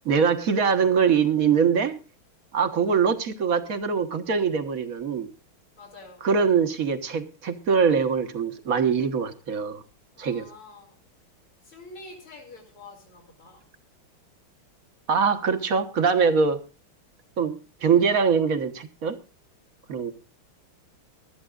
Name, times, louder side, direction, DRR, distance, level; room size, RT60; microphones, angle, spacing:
voice 1, 0.0-2.0 2.5-5.3 6.2-9.8 10.2-10.5 15.1-16.6 17.4-19.2 19.9-20.1, right 6 dB, 45° right, 1.5 m, -23 dB
voice 2, 5.8-6.2 10.2-11.0 11.6-13.6, left 2 dB, 85° left, 4.2 m, -46 dB
23.5 x 12.5 x 2.4 m
omnidirectional pair, 2.3 m